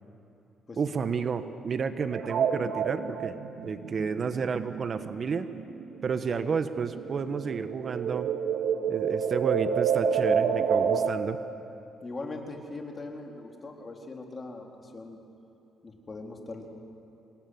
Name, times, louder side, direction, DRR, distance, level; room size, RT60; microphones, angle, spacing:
voice 1, 0.8-5.5 6.0-8.3 8.9-11.4, right 5 dB, 45° right, 10 dB, 1.3 m, -31 dB
sound 1, 2.1-6.2 6.5-11.1, right 7 dB, 75° right, 1.9 m, -28 dB
voice 2, 12.0-15.2 15.8-16.7, left 2 dB, 30° left, 2 dB, 4.0 m, -40 dB
27.0 x 20.5 x 9.6 m, 2.8 s
cardioid pair, 90°, 0 cm